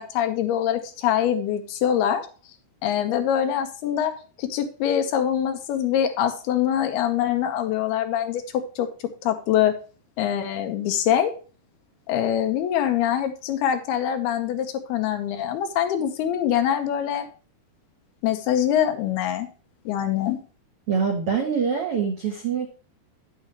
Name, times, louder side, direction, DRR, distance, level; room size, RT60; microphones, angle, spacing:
voice 1, 0.0-2.3 2.8-4.1 4.4-8.4 8.8-8.9 9.2-9.8 10.2-11.3 12.1-17.3 18.2-19.5 19.9-20.4, left 10 dB, 80° left, 6 dB, 3.0 m, -24 dB
voice 2, 20.9-22.7, right 6 dB, 75° right, 2 dB, 1.3 m, -24 dB
9.4 x 8.3 x 3.0 m, 0.37 s
omnidirectional pair, 4.6 m